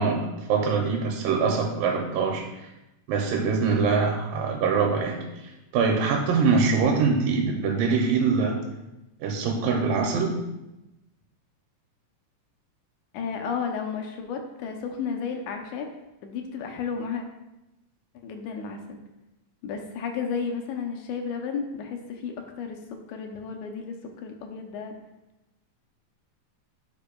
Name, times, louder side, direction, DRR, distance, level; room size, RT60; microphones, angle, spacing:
voice 1, 0.0-2.5 3.1-5.2 5.7-8.6 9.2-10.3, right 5 dB, 85° right, 0 dB, 2.4 m, -23 dB
voice 2, 13.1-15.9 16.2-17.2 18.2-19.0 19.6-24.9, left 6 dB, 75° left, 3 dB, 1.9 m, -33 dB
10.5 x 5.2 x 2.2 m, 0.93 s
omnidirectional pair, 4.0 m